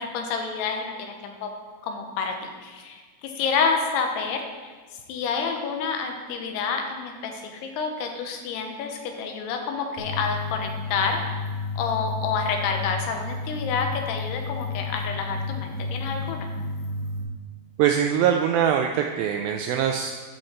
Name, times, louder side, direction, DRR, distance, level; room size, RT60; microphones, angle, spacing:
voice 1, 0.0-1.5 1.8-4.7 5.1-11.5 11.7-16.5, left 5 dB, 90° left, 4 dB, 3.0 m, -29 dB
sound 1, 10.0-17.2, left 4 dB, 70° left, 3.4 m, -32 dB
voice 2, 17.8-20.1, right 9 dB, 85° right, 4 dB, 2.1 m, -22 dB
10.5 x 5.9 x 4.3 m, 1.5 s
omnidirectional pair, 4.7 m